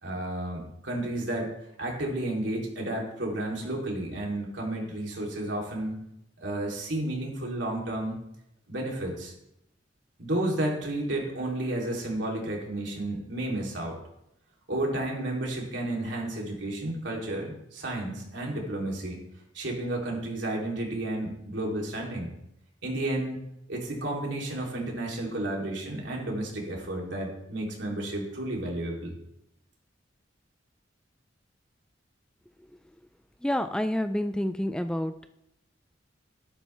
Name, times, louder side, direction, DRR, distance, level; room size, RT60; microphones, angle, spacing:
voice 1, 0.0-1.5 1.8-6.0 6.4-8.2 8.7-9.3 10.2-14.0 14.7-19.2 19.5-22.3 22.8-23.4 23.7-29.1, right 1 dB, 70° right, -1 dB, 3.3 m, -32 dB
voice 2, 33.4-35.1, left 1 dB, 5° left, 9 dB, 0.4 m, -28 dB
12.5 x 11.5 x 3.4 m, 0.82 s
head